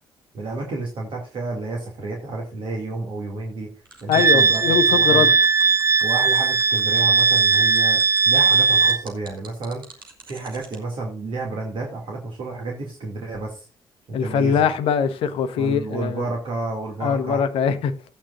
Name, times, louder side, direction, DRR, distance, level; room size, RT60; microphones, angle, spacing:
voice 1, 0.3-5.3 6.0-10.0 10.3-13.7 14.1-14.7 15.5-17.4, right 3 dB, 50° right, 2.5 m, -31 dB
sound 1, 3.9-10.8, right 3 dB, 80° right, 1.5 m, -45 dB
voice 2, 4.1-5.3 14.1-16.2 17.0-17.9, left 7 dB, 55° left, 1.0 m, -22 dB
Wind instrument woodwind instrument, 4.1-9.0, right 5 dB, 25° right, 0.5 m, -18 dB
14.5 x 8.7 x 2.6 m
figure-of-eight pair, 40°, 11 cm